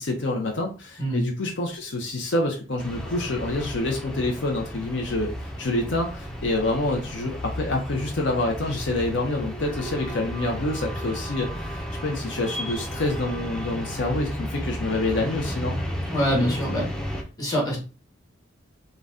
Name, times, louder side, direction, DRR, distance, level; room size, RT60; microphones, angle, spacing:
voice 1, 0.0-15.8, left 2 dB, 65° left, 2 dB, 0.6 m, -27 dB
sound 1, 2.8-17.2, equal, 5° left, 0.4 m, -33 dB
voice 2, 16.1-16.9 17.4-17.8, equal, 20° left, -2 dB, 1.3 m, -24 dB
3.8 x 2.2 x 3.6 m, 0.34 s
head